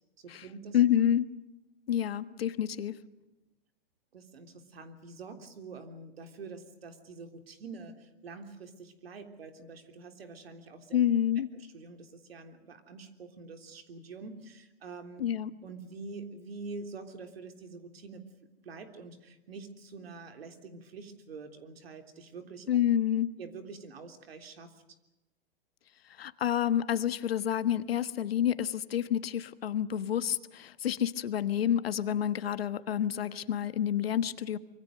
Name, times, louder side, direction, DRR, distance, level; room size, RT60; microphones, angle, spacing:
voice 1, 0.2-0.8 4.1-11.0 11.7-15.2 15.6-18.2 18.6-22.7 23.4-24.7, right 4 dB, 80° right, 7 dB, 3.5 m, -46 dB
voice 2, 0.7-1.3 1.9-2.9 10.9-11.5 15.2-15.5 22.7-23.3 26.2-34.6, left 10 dB, 80° left, 14 dB, 1.4 m, -28 dB
25.5 x 24.0 x 6.6 m, 0.98 s
hypercardioid pair, 125°, 30 cm